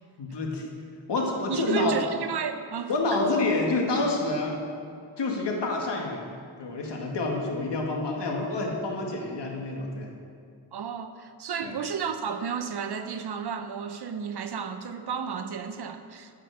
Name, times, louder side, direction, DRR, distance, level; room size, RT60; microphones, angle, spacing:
voice 1, 0.2-0.7 1.1-2.0 2.9-4.6 5.2-6.3 6.6-10.1 11.6-11.7, left 2 dB, 65° left, 2.0 m, -28 dB
voice 2, 1.5-2.9 10.7-16.3, right 6 dB, 55° right, 0.8 m, -32 dB
14.0 x 6.0 x 6.4 m
cardioid pair, 100°, 46 cm